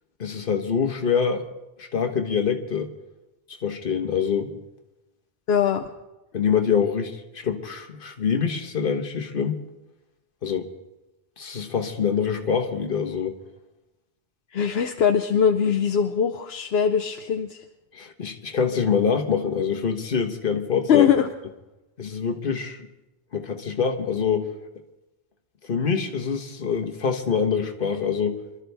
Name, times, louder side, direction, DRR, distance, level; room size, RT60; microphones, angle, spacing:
voice 1, 0.2-1.4 1.8-2.9 3.6-4.5 6.3-9.6 10.4-10.7 11.4-13.4 17.9-21.1 22.0-22.9 23.3-24.5 25.7-28.4, left 6 dB, 60° left, 5 dB, 1.4 m, -25 dB
voice 2, 5.5-5.9 14.5-17.6 20.9-21.3, left 8 dB, 80° left, 7 dB, 0.9 m, -21 dB
25.5 x 12.5 x 3.4 m, 1.0 s
omnidirectional pair, 1.0 m